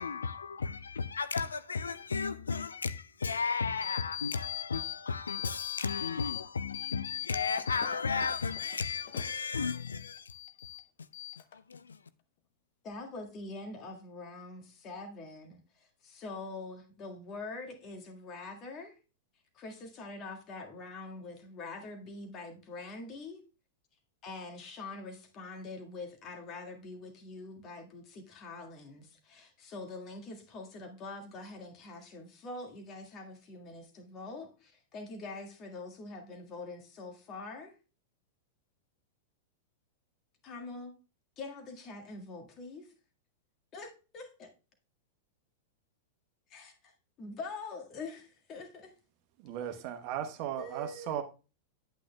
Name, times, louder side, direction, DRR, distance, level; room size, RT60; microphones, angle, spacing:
voice 1, 0.0-10.3 11.5-12.0, left 5 dB, 80° left, 0.3 m, -34 dB
sound 1, 3.8-5.0 5.3-6.4 6.7-9.4 9.7-10.8 11.1-11.7, left 14 dB, 60° left, 0.7 m, -40 dB
voice 2, 12.8-19.0 19.5-23.4 24.2-37.7 40.4-40.9 41.4-42.9 43.7-44.5 46.5-46.9 47.2-48.9 50.6-51.2, left 3 dB, 35° left, 1.7 m, -44 dB
voice 3, 49.4-51.2, right 10 dB, 50° right, 1.0 m, -36 dB
9.0 x 8.5 x 2.2 m
figure-of-eight pair, 95°, 0 cm